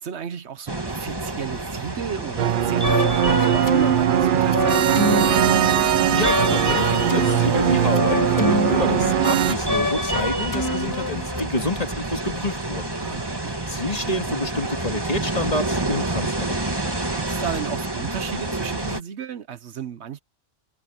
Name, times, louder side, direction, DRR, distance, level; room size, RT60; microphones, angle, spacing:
voice 1, 0.0-5.5 13.0-13.5 17.2-20.2, right 8 dB, 75° right, 1.1 m, -33 dB
sound 1, 0.7-19.0, right 2 dB, 20° right, 1.8 m, -29 dB
sound 2, 2.4-9.5, right 10 dB, 60° right, 0.6 m, -20 dB
sound 3, 2.8-11.4, left 2 dB, 15° left, 1.4 m, -26 dB
voice 2, 6.1-12.9 13.4-16.6, left 1 dB, 35° left, 2.5 m, -28 dB
omnidirectional pair, 1.2 m